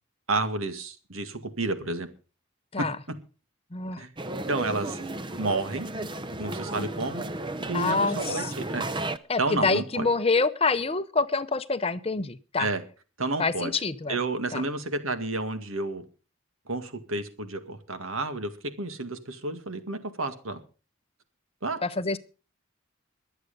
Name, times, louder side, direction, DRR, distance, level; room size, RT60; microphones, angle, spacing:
voice 1, 0.3-2.1 4.0-4.1 4.5-5.0 5.4-5.9 6.4-7.3 7.7-8.9 9.4-10.1 12.6-12.8 13.2-13.7 14.1-16.0 16.7-18.5 18.8-20.6 21.6-21.8, right 3 dB, 80° right, 9 dB, 2.0 m, -30 dB
voice 2, 3.7-4.0 6.8-6.9 7.7-8.5 9.3-12.7 13.4-14.2 14.5-14.6 21.8-22.2, left 4 dB, 30° left, 13 dB, 0.7 m, -26 dB
sound 1, 4.2-9.2, right 2 dB, 25° right, 0.7 m, -33 dB
22.0 x 8.1 x 5.3 m, 0.36 s
head